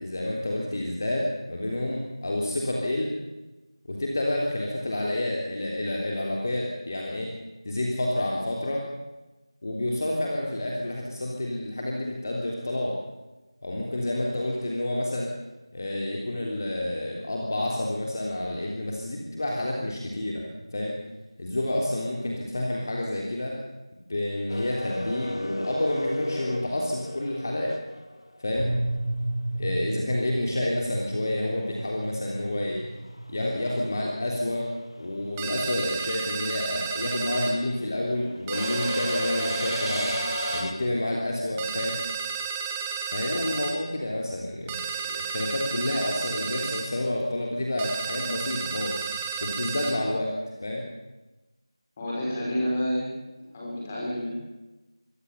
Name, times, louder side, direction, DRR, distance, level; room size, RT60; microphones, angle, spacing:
voice 1, 0.0-3.1 3.9-7.3 7.6-8.8 9.6-12.9 13.6-15.3 15.7-20.5 20.7-20.9 21.4-23.6 24.1-27.7 28.4-28.7 29.6-32.8 33.3-34.7 35.0-40.2 40.5-42.0 43.1-49.1 49.4-50.3 50.6-50.8, left 1 dB, 35° left, -1 dB, 3.5 m, -29 dB
sound 1, 24.5-28.5 31.0-31.1 32.4-32.7 32.9-40.7, left 1 dB, 65° left, 2.6 m, -34 dB
sound 2, 28.6-36.6, right 1 dB, 80° right, 6.5 m, -34 dB
sound 3, 35.4-37.6 38.5-40.7 41.6-43.8 44.7-46.9 47.8-50.0, right 6 dB, 5° right, 0.8 m, -32 dB
voice 2, 52.0-53.1 53.5-54.3, equal, 15° left, -4 dB, 5.9 m, -29 dB
25.0 x 18.0 x 7.1 m, 1.1 s
figure-of-eight pair, 170°, 3 cm